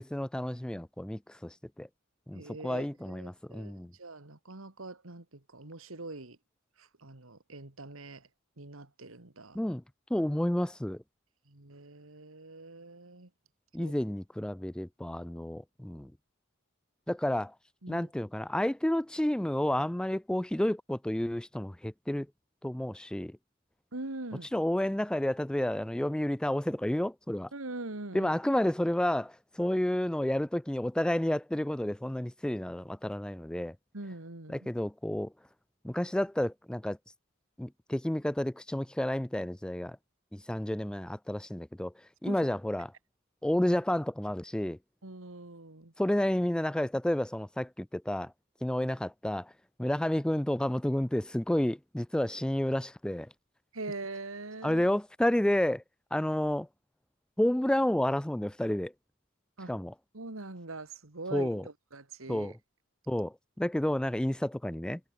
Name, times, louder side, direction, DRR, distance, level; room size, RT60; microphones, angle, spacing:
voice 1, 0.0-1.9 2.3-3.9 9.5-9.8 10.1-11.0 13.7-16.1 17.1-17.5 17.9-22.3 22.6-23.3 24.5-27.5 28.1-33.7 34.5-35.3 35.8-37.0 37.6-40.0 40.3-41.9 42.2-42.9 43.4-44.8 46.0-48.3 48.6-49.5 49.8-53.3 54.6-55.8 56.1-56.7 57.4-58.9 59.7-59.9 61.3-61.6 62.3-62.5 63.1-65.0, left 1 dB, 5° left, 0.3 m, -30 dB
voice 2, 2.3-6.4 6.8-8.3 8.6-9.6 11.5-13.3 13.8-13.9 17.8-18.1 23.9-24.5 27.5-28.4 33.9-34.6 42.3-42.5 45.0-45.9 53.7-54.9 59.6-59.7 60.1-62.5, right 2 dB, 85° right, 2.3 m, -43 dB
head